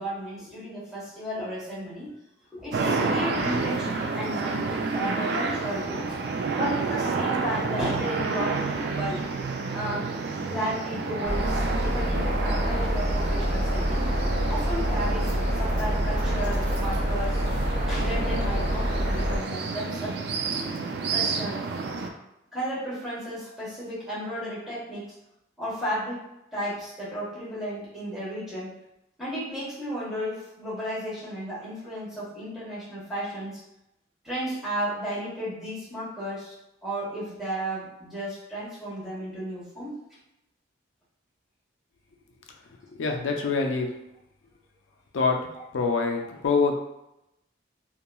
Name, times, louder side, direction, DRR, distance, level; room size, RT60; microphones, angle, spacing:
voice 1, 0.0-2.1 2.5-6.1 6.5-9.2 9.7-10.1 10.4-14.1 14.5-17.4 17.9-20.2 21.1-21.6 22.5-25.1 25.6-26.2 26.5-28.8 29.2-33.6 34.2-36.5 36.8-40.0, equal, ahead, -11 dB, 1.2 m, -34 dB
sound 1, 2.7-22.1, right 4 dB, 60° right, 0.3 m, -30 dB
sound 2, 11.2-19.4, equal, 45° right, 0.9 m, -26 dB
voice 2, 42.9-43.9 45.1-45.4 45.7-46.8, left 4 dB, 85° left, 2 dB, 0.4 m, -25 dB
3.0 x 2.4 x 2.2 m, 0.87 s
head